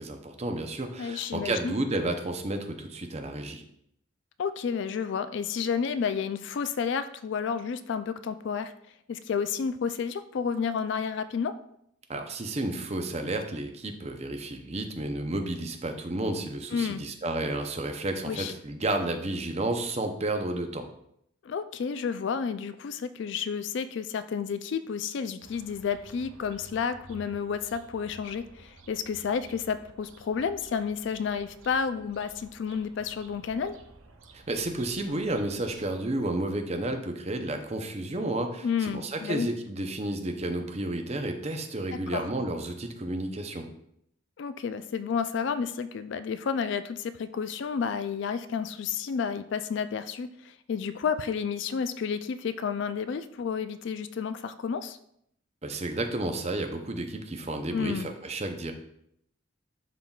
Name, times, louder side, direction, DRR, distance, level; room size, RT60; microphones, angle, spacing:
voice 1, 0.0-3.6 12.1-20.9 34.3-43.7 55.6-58.7, right 2 dB, 30° right, 5 dB, 0.6 m, -31 dB
voice 2, 1.0-1.7 4.4-8.7 9.1-11.5 16.7-17.0 18.3-18.5 21.4-33.8 38.6-39.5 42.1-42.3 44.4-55.0 57.7-58.1, left 6 dB, 55° left, 12 dB, 0.3 m, -31 dB
sound 1, 25.4-35.9, right 2 dB, 75° right, 0.8 m, -53 dB
11.0 x 3.7 x 2.3 m, 0.74 s
head